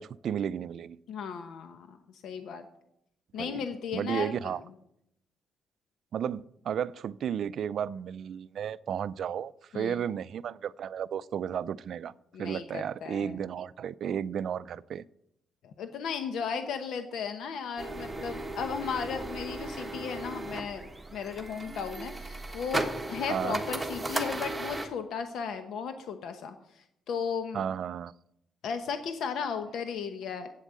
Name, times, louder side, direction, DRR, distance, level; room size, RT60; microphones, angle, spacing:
voice 1, 0.0-1.0 3.4-3.6 3.9-4.6 6.1-12.1 12.4-15.0 23.3-23.6 27.5-28.1, right 8 dB, 65° right, 18 dB, 0.4 m, -33 dB
voice 2, 1.1-2.6 3.3-4.5 9.7-10.0 12.3-13.4 15.6-27.6 28.6-30.5, left 6 dB, 75° left, 8 dB, 0.9 m, -35 dB
sound 1, 17.8-24.9, right 2 dB, 10° right, 1.5 m, -36 dB
8.3 x 8.1 x 7.5 m, 0.77 s
cardioid pair, 90°, 0 cm